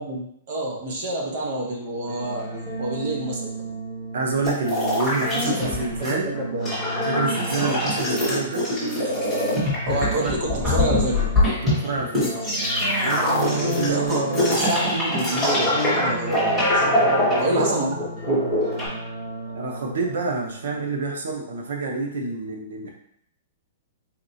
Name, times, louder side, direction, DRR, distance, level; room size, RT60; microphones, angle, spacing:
voice 1, 0.0-2.5 2.8-3.7 5.6-5.7 6.1-6.7 7.5-7.8 9.8-11.2 13.8-14.3 14.5-16.8 17.4-18.5, right 1 dB, 45° right, -1 dB, 0.9 m, -28 dB
sound 1, 2.1-21.0, equal, 30° right, 1.3 m, -33 dB
voice 2, 4.1-6.3 7.0-8.7 10.0-10.4 11.4-12.5 13.0-14.5 16.8-17.7 19.5-22.9, right 3 dB, 90° right, 1 dB, 0.7 m, -28 dB
sound 2, 4.4-6.1 6.4-18.9, left 1 dB, 5° right, 1.6 m, -23 dB
4.3 x 3.1 x 2.7 m, 0.71 s
hypercardioid pair, 170°, 0 cm